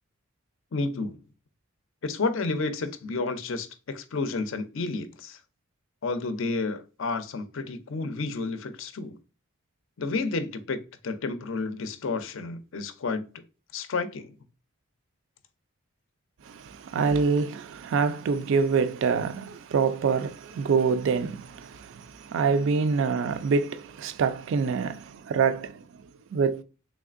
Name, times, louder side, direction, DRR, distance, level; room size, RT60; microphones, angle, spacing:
voice 1, 0.7-1.2 2.0-5.4 6.0-9.2 10.0-10.8 11.0-13.3 13.7-14.3, left 3 dB, 60° left, 0.5 m, -31 dB
voice 2, 16.5-25.8 26.3-26.6, right 5 dB, 55° right, 0.3 m, -26 dB
3.5 x 3.2 x 2.4 m
head